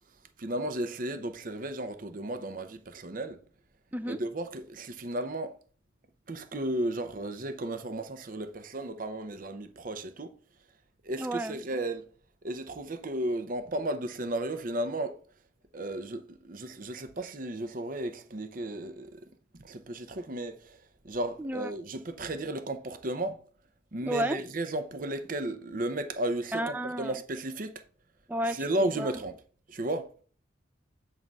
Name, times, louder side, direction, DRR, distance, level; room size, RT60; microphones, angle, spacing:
voice 1, 0.4-3.4 4.1-5.6 6.3-10.4 11.0-12.1 12.4-15.2 15.7-19.3 19.6-23.4 23.9-27.8 28.4-29.4 29.7-30.1, right 1 dB, 45° right, 0.7 m, -34 dB
voice 2, 11.2-11.6 21.4-21.7 24.1-24.4 26.5-27.1 28.3-28.6 29.0-29.1, right 1 dB, 10° right, 0.4 m, -31 dB
7.5 x 3.7 x 5.4 m
head